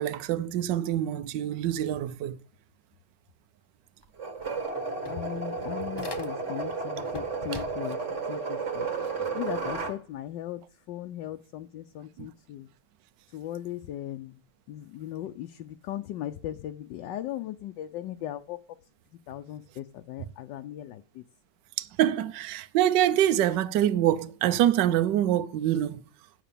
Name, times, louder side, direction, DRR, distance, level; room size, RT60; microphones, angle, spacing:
voice 1, 0.0-2.4 7.5-7.6 9.2-9.3 12.2-12.3 21.8-26.0, right 11 dB, 70° right, 1.3 m, -25 dB
sound 1, 4.0-4.1 4.4-6.7 7.0-8.1, left 2 dB, 25° left, 0.5 m, -43 dB
sound 2, 4.2-10.0, right 4 dB, 40° right, 1.7 m, -33 dB
voice 2, 5.1-8.0 8.3-8.9 9.3-10.6 10.9-12.7 13.3-14.4 14.7-18.6 19.3-21.2, left 12 dB, 75° left, 1.2 m, -38 dB
9.1 x 6.9 x 6.7 m
omnidirectional pair, 2.1 m